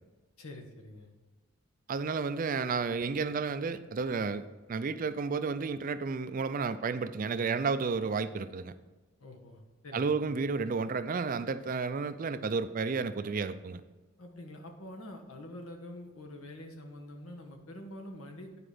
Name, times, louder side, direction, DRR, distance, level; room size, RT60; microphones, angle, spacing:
voice 1, 0.4-1.1 9.2-10.1 14.2-18.6, left 1 dB, 85° left, 3 dB, 1.3 m, -46 dB
voice 2, 1.9-8.7 9.9-13.8, right 4 dB, 40° right, 12 dB, 0.4 m, -32 dB
9.7 x 5.0 x 5.0 m, 1.2 s
head